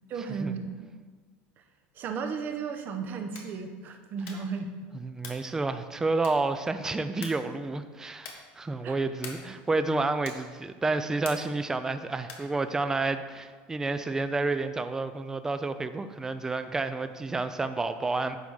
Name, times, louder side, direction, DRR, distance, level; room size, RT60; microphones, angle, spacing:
voice 1, 0.1-0.7 1.9-4.7 8.8-9.0, right 5 dB, 40° right, 6 dB, 0.9 m, -34 dB
sound 1, 3.2-3.6 4.2-4.6 5.2-5.5 6.2-6.6 7.2-7.5 8.2-8.5 9.2-9.6 10.2-10.6 11.2-11.6 12.2-12.6, left 5 dB, 55° left, 1.5 m, -44 dB
voice 2, 5.0-18.4, right 3 dB, 10° right, 10 dB, 0.4 m, -30 dB
10.0 x 3.6 x 6.3 m, 1.5 s
supercardioid pair, 145°, 5 cm